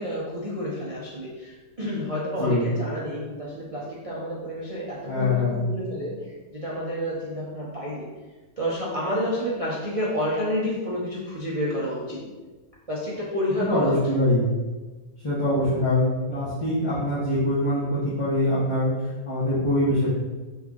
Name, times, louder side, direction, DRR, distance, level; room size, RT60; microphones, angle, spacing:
voice 1, 0.0-6.2 6.5-8.1 8.6-12.2 12.9-14.0, equal, 50° right, -7 dB, 0.4 m, -29 dB
voice 2, 2.4-2.7 5.1-5.6 13.5-14.4 15.2-20.1, left 1 dB, 25° left, -11 dB, 0.8 m, -23 dB
3.6 x 3.2 x 3.6 m, 1.2 s
omnidirectional pair, 1.7 m